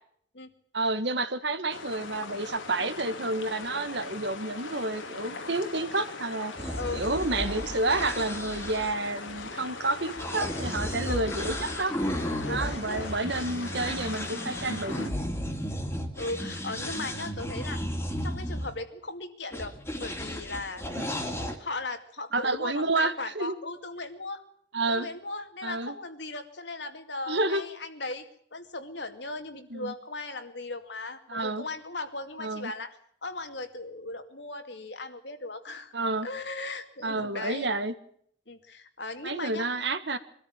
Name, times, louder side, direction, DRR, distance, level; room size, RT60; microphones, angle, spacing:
voice 1, 0.7-11.9 12.5-15.1 20.9-21.0 22.3-23.5 24.7-25.1 25.6-25.9 27.3-27.6 29.7-29.9 31.3-31.6 32.4-32.7 35.9-36.3 37.0-37.9 39.2-40.2, right 2 dB, 60° right, 11 dB, 1.6 m, -30 dB
sound 1, 1.7-15.1, left 3 dB, 80° left, 2.8 m, -40 dB
sound 2, 6.6-18.7 19.5-21.5, equal, 10° left, 2.6 m, -34 dB
voice 2, 12.4-13.3 16.1-17.8 18.2-20.8 21.6-24.4 24.9-28.2 28.5-32.9 33.2-35.9 36.2-37.7 38.5-39.7, left 2 dB, 60° left, 7 dB, 2.4 m, -37 dB
23.5 x 13.5 x 8.9 m, 0.65 s
head